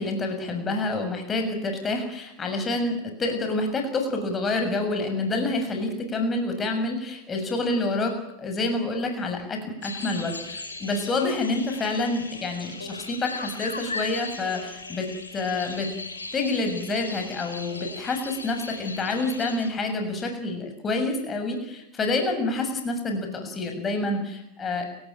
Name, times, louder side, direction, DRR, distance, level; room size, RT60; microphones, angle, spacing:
voice 1, 0.0-15.1 15.3-15.9 16.3-24.8, left 2 dB, 20° left, 5 dB, 7.0 m, -28 dB
sound 1, 9.8-19.7, left 3 dB, 80° left, 4.8 m, -38 dB
30.0 x 17.0 x 9.2 m, 0.83 s
figure-of-eight pair, 90°, 0 cm